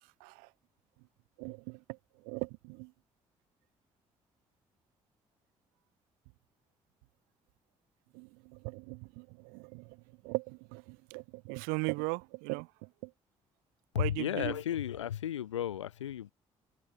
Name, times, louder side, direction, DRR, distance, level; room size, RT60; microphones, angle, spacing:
voice 1, 1.4-1.8 2.3-2.9 8.1-8.3 8.6-9.3 9.5-9.8 10.2-12.7 14.0-14.5, right 34 dB, 75° right, 0.4 m, -37 dB
voice 2, 13.9-16.3, left 10 dB, 90° left, 1.5 m, -34 dB
hypercardioid pair, 45°, 15 cm